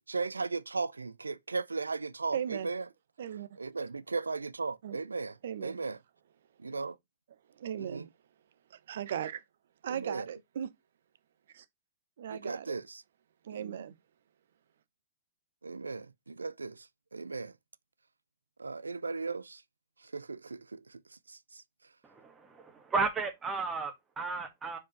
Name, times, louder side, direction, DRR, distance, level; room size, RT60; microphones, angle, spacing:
voice 1, 0.0-2.8 3.6-6.0 6.6-7.0 7.8-8.1 9.9-10.3 12.3-13.0 13.5-13.9 15.6-16.9 17.1-17.5 18.6-19.6 20.1-21.0 21.3-21.6, right 4 dB, 85° right, 0.4 m, -37 dB
voice 2, 2.3-2.7 3.2-3.6 4.8-5.0 5.4-5.8 7.6-8.1 8.7-9.4 9.8-10.7 11.5-11.6 12.2-12.8 13.4-13.9, right 9 dB, 65° right, 0.8 m, -37 dB
voice 3, 22.0-24.8, right 4 dB, 20° right, 2.0 m, -34 dB
4.9 x 4.8 x 5.2 m
figure-of-eight pair, 110°, 0 cm